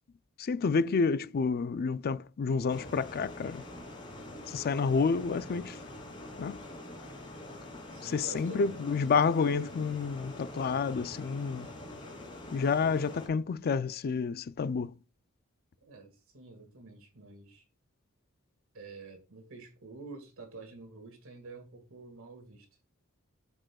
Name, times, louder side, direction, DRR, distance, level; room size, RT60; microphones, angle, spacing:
voice 1, 0.4-3.6 4.5-5.8 6.4-6.6 8.0-11.7 12.5-14.9, left 5 dB, 45° left, 0.4 m, -29 dB
sound 1, 2.7-13.3, left 1 dB, 25° left, 2.9 m, -45 dB
voice 2, 7.9-9.0 15.8-17.6 18.7-22.7, right 3 dB, 65° right, 2.0 m, -48 dB
7.6 x 6.4 x 2.3 m
head